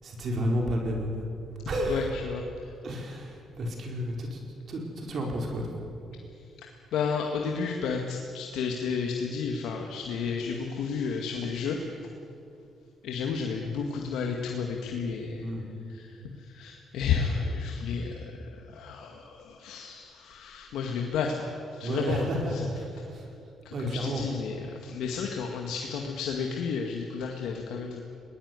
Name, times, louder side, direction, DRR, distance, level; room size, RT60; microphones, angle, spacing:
voice 1, 0.0-1.2 1.7-2.1 2.8-4.4 4.7-5.7 15.4-15.6 21.8-23.2 23.7-24.2, equal, 55° right, 1 dB, 4.8 m, -31 dB
voice 2, 1.9-2.4 6.9-11.8 13.0-15.4 15.9-22.7 23.7-28.0, left 5 dB, 85° left, 2 dB, 1.9 m, -32 dB
21.5 x 19.0 x 9.7 m, 2.6 s
cardioid pair, 90°, 0 cm